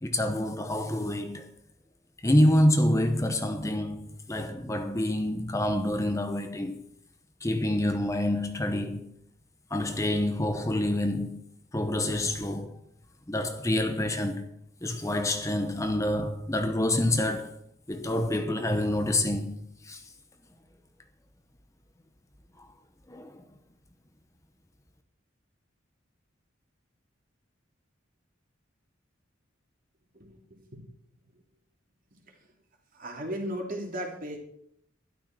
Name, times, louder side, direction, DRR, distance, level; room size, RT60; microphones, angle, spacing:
voice 1, 0.0-1.5 2.2-6.8 7.4-9.1 9.7-11.4 11.7-12.8 13.3-14.5 14.8-17.5 17.9-19.6 19.8-20.0 22.6-22.7 23.1-23.4, left 1 dB, 15° left, 0.9 m, -27 dB
voice 2, 30.1-30.8 32.9-34.4, equal, 45° right, 3.2 m, -36 dB
12.5 x 12.0 x 6.1 m
head